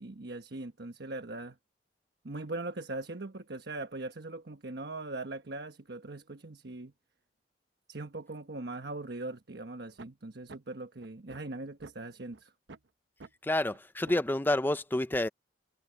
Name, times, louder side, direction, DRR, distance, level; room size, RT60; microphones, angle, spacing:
voice 1, 0.0-1.6 2.2-6.9 7.9-12.5, right 2 dB, 65° right, 1.2 m, -40 dB
sound 1, 10.0-10.1 10.5-10.6 11.0-11.9 12.3-12.4 12.7-12.9 13.2-13.3 13.7-13.8 14.1-14.3, right 3 dB, 90° right, 0.9 m, -49 dB
voice 2, 13.4-15.3, left 1 dB, 10° left, 0.5 m, -29 dB
head